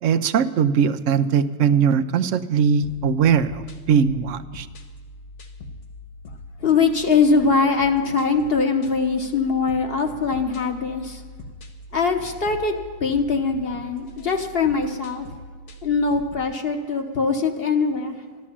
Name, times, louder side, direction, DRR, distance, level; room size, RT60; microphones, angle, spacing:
voice 1, 0.0-4.7, right 7 dB, 90° right, 11 dB, 1.0 m, -20 dB
sound 1, 2.8-16.5, left 1 dB, 70° left, 1.5 m, -42 dB
voice 2, 6.6-11.2 11.9-15.2 15.8-18.2, left 4 dB, 55° left, 5 dB, 1.4 m, -22 dB
12.5 x 12.5 x 7.3 m, 1.5 s
omnidirectional pair, 1.3 m